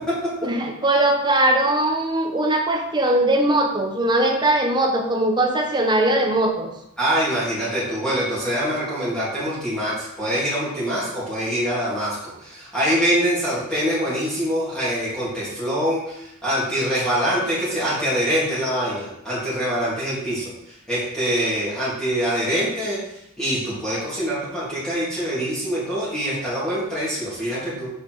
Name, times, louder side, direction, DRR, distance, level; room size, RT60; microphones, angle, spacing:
voice 1, 0.4-6.7, right 1 dB, 20° right, 2 dB, 1.1 m, -20 dB
voice 2, 7.0-23.0 23.4-27.9, equal, 5° left, -10 dB, 2.7 m, -24 dB
6.6 x 5.4 x 4.7 m, 0.79 s
head